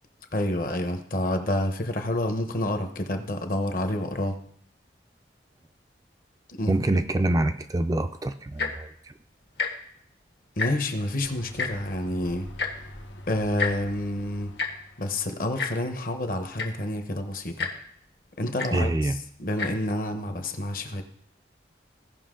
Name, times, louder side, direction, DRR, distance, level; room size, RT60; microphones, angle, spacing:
voice 1, 0.3-4.4 6.6-6.8 10.6-12.5 13.3-14.5 15.0-17.7 18.4-18.9 19.4-21.0, left 1 dB, 45° left, 7 dB, 0.9 m, -28 dB
voice 2, 6.7-9.1 18.7-19.2, right 1 dB, 20° right, 8 dB, 0.3 m, -25 dB
Tick-tock, 8.5-8.9 9.5-9.7 10.0-10.1 10.4-11.0 11.6-11.7 12.6-12.7 13.6-13.7 14.6-14.7 15.6-15.7 16.3-16.4 16.6-16.9 17.6-17.7 18.6-18.7 19.5-19.7 20.4-20.5, left 5 dB, 70° left, 1.3 m, -29 dB
sound 1, 11.2-15.5, equal, 85° left, 1.1 m, -44 dB
16.0 x 5.6 x 3.8 m, 0.66 s
head